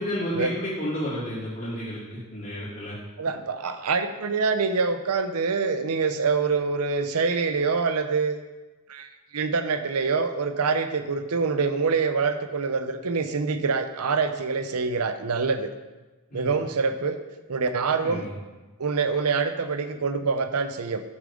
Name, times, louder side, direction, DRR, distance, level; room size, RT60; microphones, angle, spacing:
voice 1, 0.0-2.9 16.3-16.5 18.0-18.3, equal, 45° left, -12 dB, 2.8 m, -31 dB
voice 2, 3.2-8.4 8.9-15.7 16.3-17.2 17.5-18.3 18.8-21.0, right 4 dB, 80° right, 9 dB, 0.7 m, -25 dB
8.8 x 6.8 x 3.8 m, 1.2 s
head